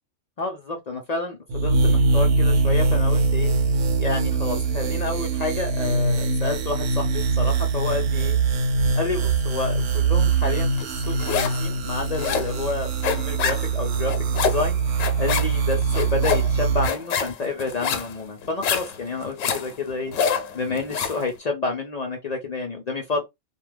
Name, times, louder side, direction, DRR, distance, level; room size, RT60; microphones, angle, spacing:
voice 1, 0.4-3.5 4.0-8.4 8.9-14.8 15.2-20.1 20.5-23.3, left 3 dB, 55° left, 0.4 m, -29 dB
sound 1, 1.5-16.9, right 4 dB, 80° right, 1.0 m, -22 dB
sound 2, 10.8-11.7 11.9-21.2, left 6 dB, 85° left, 1.0 m, -27 dB
2.3 x 2.3 x 3.1 m
omnidirectional pair, 1.3 m